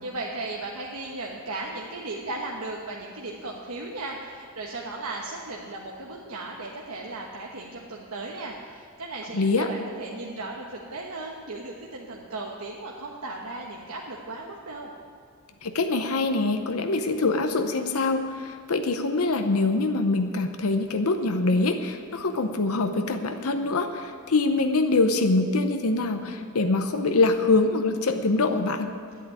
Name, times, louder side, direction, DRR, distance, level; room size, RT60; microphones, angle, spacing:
voice 1, 0.0-14.9, right 2 dB, 85° right, -2 dB, 1.2 m, -36 dB
voice 2, 9.3-9.7 15.6-28.9, left 3 dB, 85° left, 6 dB, 0.8 m, -24 dB
10.5 x 8.4 x 9.5 m, 2.1 s
head